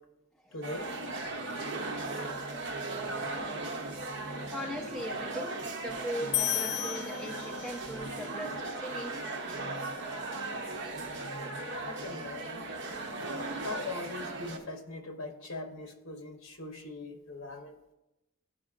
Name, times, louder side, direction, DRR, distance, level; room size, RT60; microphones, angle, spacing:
voice 1, 0.5-0.9 11.8-12.6 13.6-17.8, left 2 dB, 60° left, 4 dB, 0.9 m, -41 dB
sound 1, 0.6-14.6, right 2 dB, 55° right, 0.7 m, -37 dB
voice 2, 4.5-9.2, equal, 5° left, -3 dB, 0.9 m, -40 dB
sound 2, 6.3-8.0, left 14 dB, 85° left, 0.4 m, -33 dB
11.5 x 4.9 x 2.5 m, 0.95 s
head